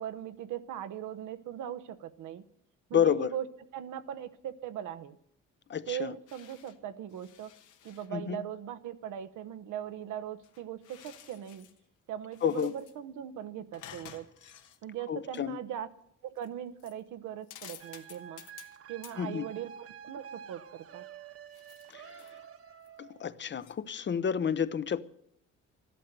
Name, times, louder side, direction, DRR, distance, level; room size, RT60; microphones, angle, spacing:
voice 1, 0.0-2.4 2.9-3.4 3.7-5.2 5.9-7.5 7.8-11.7 12.1-14.3 14.8-15.9 16.2-18.4 18.9-21.0, right 10 dB, 80° right, 0.9 m, -39 dB
voice 2, 2.9-3.3 5.7-6.1 8.1-8.5 12.4-12.7 15.1-15.6 19.2-19.5 21.9-22.2 23.0-25.0, left 8 dB, 40° left, 0.6 m, -30 dB
sound 1, 6.3-6.8 7.1-8.1 10.4-11.8 12.2-13.0 13.7-14.8 15.3-15.4 16.4-16.5 16.8-17.0 17.4-18.8 19.0-19.2 21.5-22.4 22.9-23.0 23.6-23.7, left 9 dB, 80° left, 1.3 m, -52 dB
sound 2, 17.8-23.3, right 8 dB, 50° right, 0.9 m, -49 dB
13.5 x 12.0 x 6.7 m
cardioid pair, 90°, 30 cm